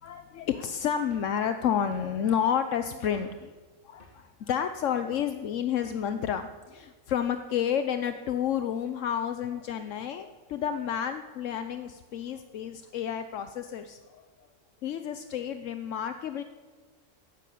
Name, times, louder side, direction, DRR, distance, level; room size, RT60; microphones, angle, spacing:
voice 1, 0.0-3.5 3.8-14.2 14.8-16.4, left 8 dB, 80° left, 9 dB, 1.1 m, -30 dB
sound 1, 1.1-1.4 1.9-2.2 3.1-3.5 4.0-4.3 5.1-5.4 5.8-6.1, left 1 dB, 45° left, 2.2 m, -53 dB
15.0 x 11.0 x 8.4 m, 1.4 s
omnidirectional pair, 1.3 m